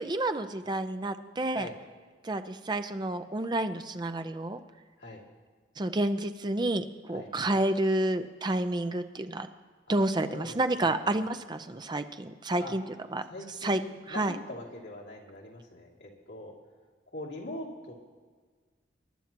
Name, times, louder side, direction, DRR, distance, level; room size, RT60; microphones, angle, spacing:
voice 1, 0.0-1.7 2.2-4.6 5.8-9.5 9.9-12.8 13.1-13.2 13.6-13.8 14.1-14.4, right 1 dB, 25° right, 9 dB, 0.6 m, -29 dB
voice 2, 10.2-11.0 12.6-12.7 13.3-16.5 17.1-17.9, left 1 dB, 70° left, -3 dB, 2.8 m, -42 dB
22.5 x 11.5 x 3.0 m, 1.5 s
head